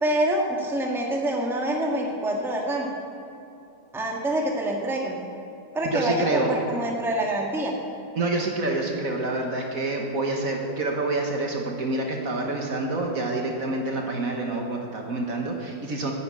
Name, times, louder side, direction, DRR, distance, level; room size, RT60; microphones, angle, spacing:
voice 1, 0.0-2.9 3.9-5.2 5.7-7.7, right 1 dB, ahead, -1 dB, 1.4 m, -26 dB
voice 2, 5.8-6.5 8.2-16.1, right 2 dB, 50° right, 1 dB, 1.6 m, -27 dB
11.5 x 9.3 x 8.2 m, 2.8 s
omnidirectional pair, 2.0 m